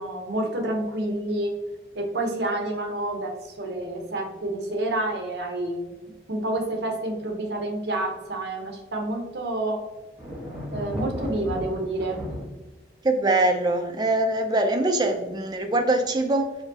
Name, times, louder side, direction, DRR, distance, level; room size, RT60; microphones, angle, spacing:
voice 1, 0.0-1.5 1.9-5.9 6.3-9.8 10.7-12.2, right 1 dB, 70° right, 2 dB, 0.8 m, -29 dB
sound 1, 10.2-12.5, left 1 dB, 5° right, 1.1 m, -34 dB
voice 2, 13.0-16.6, right 2 dB, 25° right, 4 dB, 0.4 m, -23 dB
4.8 x 2.7 x 2.7 m, 1.1 s
head